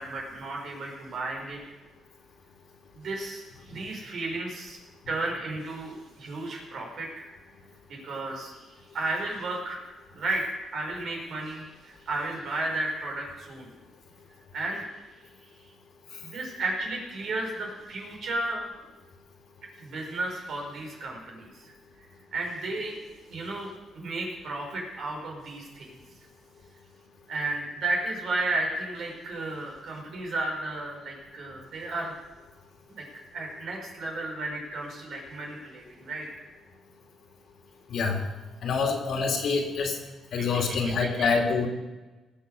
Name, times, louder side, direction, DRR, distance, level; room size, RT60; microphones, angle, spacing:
voice 1, 0.0-1.6 2.9-4.8 5.1-7.3 7.9-8.6 8.9-9.8 10.1-10.4 10.7-13.7 14.5-14.9 16.2-18.6 19.8-21.7 22.3-23.0 23.3-25.9 27.3-32.1 32.9-33.0 33.3-36.5 40.4-41.3, right 2 dB, 65° right, 0 dB, 5.0 m, -33 dB
voice 2, 38.6-40.0 40.3-41.7, left 4 dB, 65° left, 3 dB, 2.6 m, -26 dB
19.0 x 6.9 x 6.9 m, 1.2 s
cardioid pair, 90°, 0 cm